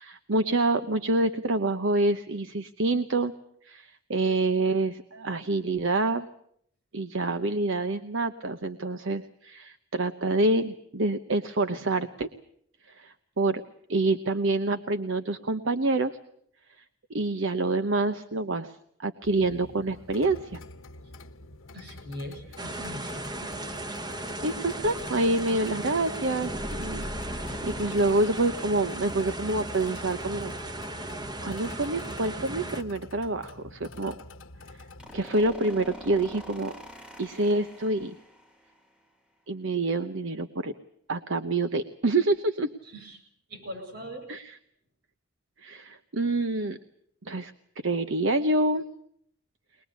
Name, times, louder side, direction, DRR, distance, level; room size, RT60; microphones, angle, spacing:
voice 1, 0.0-3.3 3.6-6.3 6.9-12.3 12.9-13.6 13.9-16.2 17.1-20.6 24.4-26.5 26.8-27.0 27.3-30.5 31.4-34.1 35.1-36.7 37.2-38.2 39.5-40.7 41.1-42.7 44.3-44.6 45.6-46.8 47.2-47.5 47.8-48.8, right 2 dB, 75° right, 10 dB, 1.0 m, -27 dB
sound 1, 19.2-35.3, left 1 dB, 85° left, 1.1 m, -47 dB
voice 2, 21.7-23.5 42.9-43.2 43.5-44.3, equal, 55° right, 7 dB, 7.3 m, -41 dB
sound 2, 22.6-32.8, right 1 dB, 20° right, 0.9 m, -36 dB
sound 3, 26.5-30.0 35.0-38.5, equal, 5° right, 1.4 m, -42 dB
22.5 x 21.0 x 8.3 m, 0.67 s
head